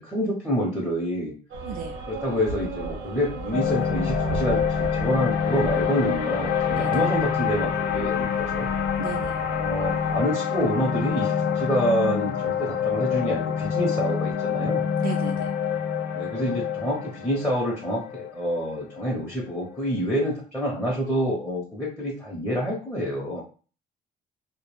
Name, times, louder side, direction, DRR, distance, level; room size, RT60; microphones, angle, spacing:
voice 1, 0.0-1.3 2.1-8.7 9.6-14.8 16.1-23.4, equal, 5° left, -3 dB, 0.7 m, -27 dB
sound 1, 1.5-10.2, right 3 dB, 80° right, 0.8 m, -35 dB
voice 2, 1.6-2.0 6.7-7.0 9.0-9.4 15.0-15.5, right 8 dB, 60° right, 3 dB, 0.4 m, -35 dB
sound 2, 3.5-19.8, left 8 dB, 70° left, 0.5 m, -26 dB
2.2 x 2.1 x 3.1 m, 0.38 s
cardioid pair, 110°, 17 cm